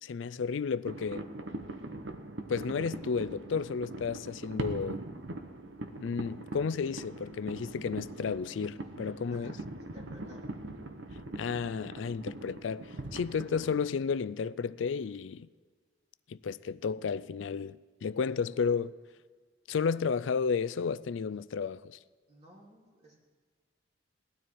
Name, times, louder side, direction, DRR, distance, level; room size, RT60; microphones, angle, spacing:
voice 1, 0.0-1.3 2.5-5.0 6.0-9.6 11.3-15.5 16.3-18.9 19.7-22.0, left 5 dB, 90° left, 0.4 m, -32 dB
sound 1, 0.9-13.8, right 2 dB, 80° right, 1.1 m, -41 dB
voice 2, 9.3-10.5 18.4-18.7 22.3-23.2, equal, 35° right, 3.2 m, -56 dB
18.5 x 12.5 x 4.7 m
head